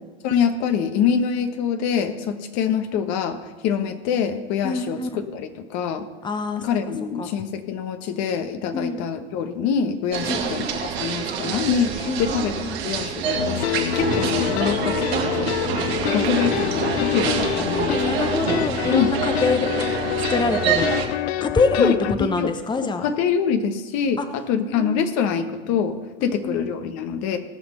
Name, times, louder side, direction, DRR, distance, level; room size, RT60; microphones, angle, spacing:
voice 1, 0.2-6.1 6.6-15.5 15.8-18.1 18.9-19.1 21.8-21.9 22.4-22.5 22.8-27.4, left 7 dB, 60° left, 7 dB, 1.4 m, -25 dB
voice 2, 4.6-5.3 6.2-6.8 7.2-7.3 8.7-9.0 10.2-10.5 12.0-12.8 16.0-16.1 17.9-19.9 20.3-20.9 21.4-23.1 24.2-24.3 24.7-25.2 26.2-26.6, left 4 dB, 15° left, 8 dB, 0.9 m, -25 dB
sound 1, 10.1-21.0, right 7 dB, 80° right, 2.0 m, -26 dB
sound 2, 13.4-22.2, left 13 dB, 80° left, 0.5 m, -26 dB
17.5 x 6.2 x 5.6 m, 1.2 s
hypercardioid pair, 85°, 31 cm